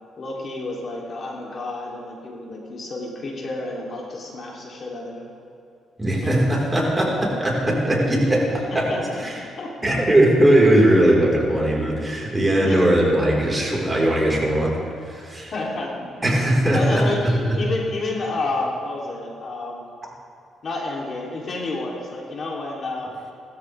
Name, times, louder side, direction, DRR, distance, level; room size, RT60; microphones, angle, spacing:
voice 1, 0.2-5.3 6.2-6.3 8.3-8.4 8.9-9.7 12.6-12.8 15.5-16.1 16.7-19.8 20.6-23.2, left 2 dB, 50° left, -2 dB, 2.8 m, -30 dB
voice 2, 6.0-8.9 9.2-9.4 9.8-15.5 16.2-17.3, right 1 dB, 15° right, -3 dB, 4.0 m, -19 dB
20.5 x 13.5 x 3.3 m, 2.5 s
cardioid pair, 90°, 0 cm